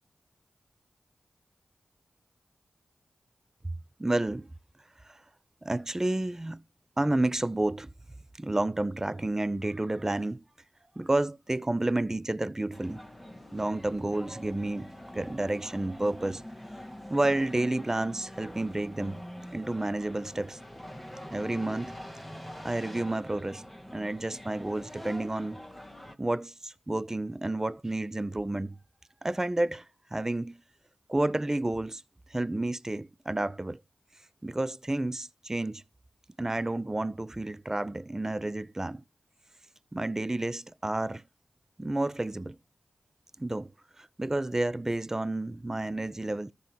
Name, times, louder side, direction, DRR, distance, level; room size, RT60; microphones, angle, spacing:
voice 1, 4.0-4.5 5.1-5.2 5.6-6.6 7.0-7.9 8.4-10.4 11.0-13.0 13.5-16.4 17.1-19.2 19.5-20.6 21.3-22.0 22.6-23.6 23.9-25.6 26.2-28.8 29.2-29.8 30.1-30.6 31.1-32.0 32.3-33.8 34.4-35.8 36.4-39.0 39.9-41.2 41.8-42.6 43.4-43.7 44.0-46.5, right 2 dB, 20° right, 0.6 m, -30 dB
sound 1, 12.7-26.2, equal, ahead, 1.8 m, -44 dB
14.0 x 5.0 x 2.9 m
cardioid pair, 45°, 2 cm